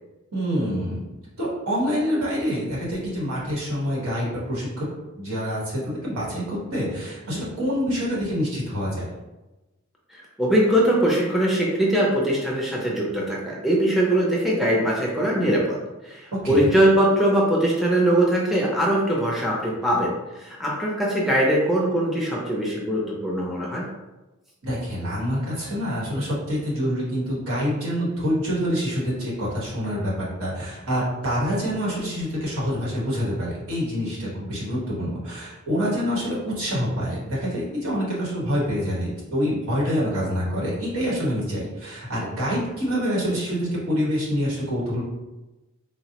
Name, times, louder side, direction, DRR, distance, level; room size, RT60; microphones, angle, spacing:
voice 1, 0.3-1.0 1.4-4.9 5.2-9.1 16.4-16.8 24.6-45.0, equal, 75° right, -5 dB, 1.2 m, -26 dB
voice 2, 10.1-15.8 16.0-23.9, right 1 dB, ahead, -4 dB, 0.5 m, -21 dB
3.8 x 2.0 x 2.8 m, 1.1 s
head